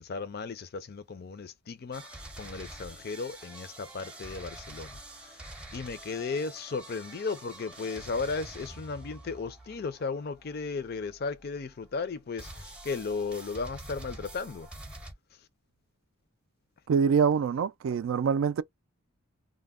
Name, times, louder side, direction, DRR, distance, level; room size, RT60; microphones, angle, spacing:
voice 1, 0.0-5.5 5.7-14.7, left 4 dB, 50° left, 0.4 m, -35 dB
sound 1, 1.9-11.9 12.4-15.1, right 1 dB, 5° right, 0.5 m, -46 dB
voice 2, 16.9-18.6, right 6 dB, 65° right, 0.3 m, -25 dB
2.2 x 2.0 x 3.5 m
head